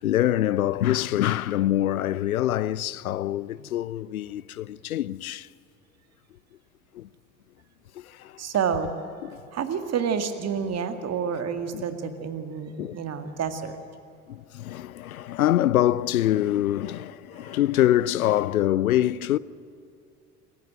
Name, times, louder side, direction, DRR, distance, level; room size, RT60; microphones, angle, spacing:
voice 1, 0.0-5.5 6.9-7.1 7.9-8.4 9.2-9.4 11.7-11.8 12.8-13.0 14.3-19.4, left 13 dB, 80° left, 0.5 m, -25 dB
voice 2, 8.4-8.9 9.5-13.8, right 7 dB, 35° right, 2.0 m, -29 dB
26.5 x 15.5 x 9.1 m
figure-of-eight pair, 65°, 43 cm